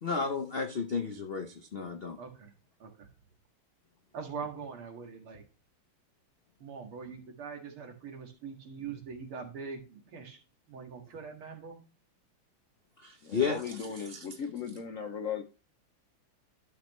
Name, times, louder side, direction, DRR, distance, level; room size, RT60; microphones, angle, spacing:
voice 1, 0.0-2.2 13.0-13.8 14.1-14.2, left 5 dB, 80° left, 5 dB, 0.5 m, -33 dB
voice 2, 2.2-2.5 2.8-3.1 4.1-5.4 6.6-10.4 10.7-11.8, right 5 dB, 85° right, 2 dB, 2.7 m, -42 dB
voice 3, 13.2-15.4, left 7 dB, 60° left, 5 dB, 0.9 m, -37 dB
13.0 x 6.0 x 3.1 m, 0.33 s
omnidirectional pair, 2.3 m